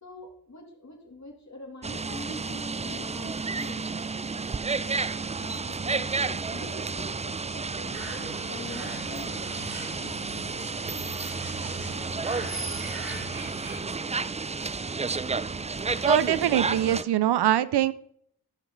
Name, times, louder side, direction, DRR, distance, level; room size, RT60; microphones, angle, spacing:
voice 1, 0.0-3.9 5.4-9.5, left 2 dB, 45° left, 1 dB, 3.0 m, -44 dB
sound 1, 1.8-17.0, right 4 dB, 20° right, 0.4 m, -31 dB
sound 2, 7.9-13.8, right 2 dB, 60° right, 3.6 m, -40 dB
voice 2, 16.1-17.9, right 12 dB, 85° right, 17 dB, 0.5 m, -23 dB
14.0 x 6.1 x 3.8 m, 0.65 s
cardioid pair, 45°, 39 cm